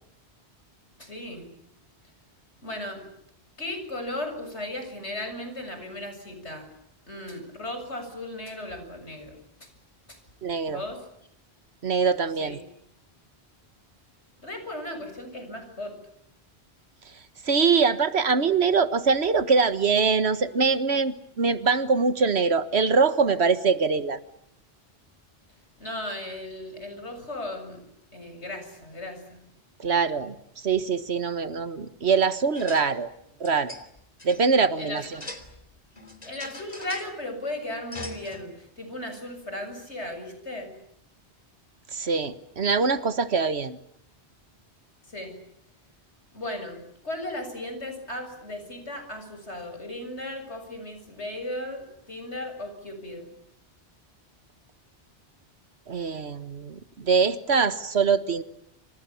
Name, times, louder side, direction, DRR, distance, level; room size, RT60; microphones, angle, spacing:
voice 1, 1.0-1.5 2.6-3.0 3.6-6.7 7.1-9.3 9.6-9.7 10.1-10.2 10.7-11.0 12.4-12.6 14.4-15.9 25.8-27.8 28.1-29.4 34.8-35.1 36.2-40.7 45.1-45.3 46.3-53.3, left 1 dB, 90° left, 7 dB, 7.4 m, -36 dB
voice 2, 10.4-10.8 11.8-12.6 17.4-24.2 29.8-30.3 30.6-33.1 33.4-33.7 34.2-35.2 41.9-43.8 55.9-58.4, right 5 dB, 75° right, 12 dB, 1.7 m, -23 dB
sound 1, 32.6-32.9 33.2-34.4 35.0-35.7 36.0-37.1 37.9-38.4, left 2 dB, 35° left, 3.4 m, -41 dB
29.5 x 27.0 x 7.2 m, 0.76 s
omnidirectional pair, 1.1 m